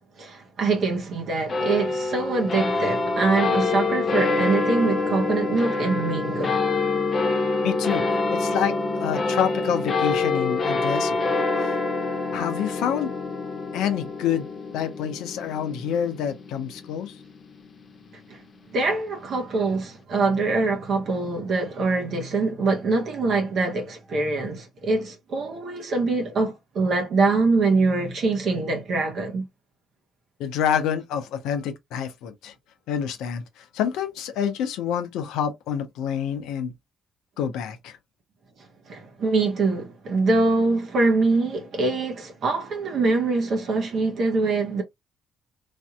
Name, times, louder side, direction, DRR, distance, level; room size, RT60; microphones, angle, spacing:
voice 1, 0.2-6.6 18.7-29.5 38.9-44.8, right 3 dB, 60° right, 0.9 m, -24 dB
sound 1, 1.5-18.2, left 3 dB, 50° left, 0.9 m, -26 dB
voice 2, 7.6-8.0 8.3-11.2 12.3-13.1 13.7-14.5 14.7-17.1 30.4-32.5 32.9-33.4 33.7-36.7 37.4-38.0, left 8 dB, 75° left, 0.6 m, -27 dB
3.3 x 2.6 x 2.3 m
hypercardioid pair, 45°, 0 cm